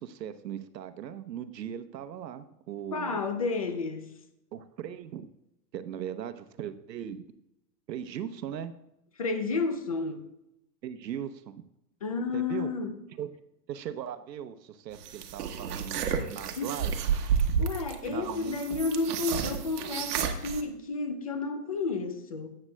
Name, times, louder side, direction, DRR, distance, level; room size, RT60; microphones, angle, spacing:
voice 1, 0.0-3.2 4.5-5.3 5.7-7.3 7.9-8.7 10.8-11.6 12.3-12.7 13.2-13.3 13.7-17.1 18.1-18.6, right 9 dB, 90° right, 0.9 m, -39 dB
voice 2, 2.9-4.1 9.2-10.2 12.0-12.9 16.1-16.3 16.6-16.8 17.6-22.6, left 4 dB, 25° left, 0.4 m, -31 dB
sound 1, 15.0-20.6, right 7 dB, 70° right, 1.3 m, -31 dB
12.5 x 8.7 x 2.2 m
hypercardioid pair, 155°, 49 cm